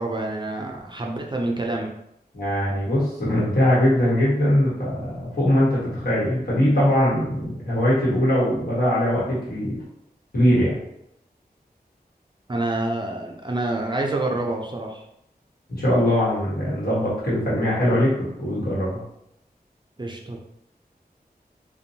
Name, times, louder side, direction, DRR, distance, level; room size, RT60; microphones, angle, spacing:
voice 1, 0.0-1.9 12.5-15.0 20.0-20.4, right 2 dB, 30° right, 0 dB, 0.4 m, -27 dB
voice 2, 2.3-9.8 10.3-10.8 15.7-18.1 18.4-19.0, equal, 65° left, -8 dB, 1.2 m, -21 dB
2.6 x 2.2 x 2.6 m, 0.78 s
wide cardioid pair, 60°, 17 cm